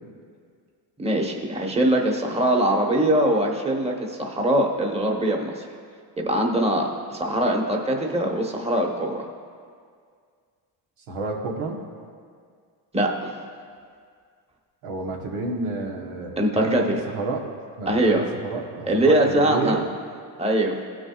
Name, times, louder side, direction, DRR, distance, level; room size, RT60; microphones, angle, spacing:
voice 1, 1.0-5.6 6.2-9.2 12.9-13.3 16.4-16.8 17.9-18.2 18.9-19.8 20.4-20.8, right 1 dB, 10° right, 0 dB, 1.1 m, -22 dB
voice 2, 11.1-11.8 14.8-17.5 17.8-19.9, right 3 dB, 90° right, 0 dB, 1.3 m, -30 dB
17.0 x 6.2 x 2.4 m, 2.1 s
cardioid pair, 80°, 49 cm